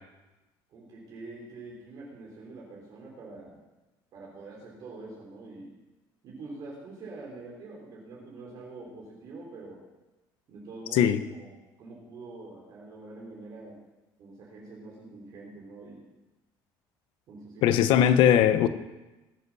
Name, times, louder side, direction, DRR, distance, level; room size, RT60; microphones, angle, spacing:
voice 1, 0.7-3.7 4.1-5.7 6.2-9.8 10.5-13.8 14.2-16.0 17.3-17.9, right 3 dB, 50° right, -4 dB, 3.8 m, -45 dB
voice 2, 17.6-18.7, left 10 dB, 75° left, 11 dB, 1.0 m, -20 dB
19.5 x 8.4 x 6.2 m, 1.1 s
cardioid pair, 160°, 9 cm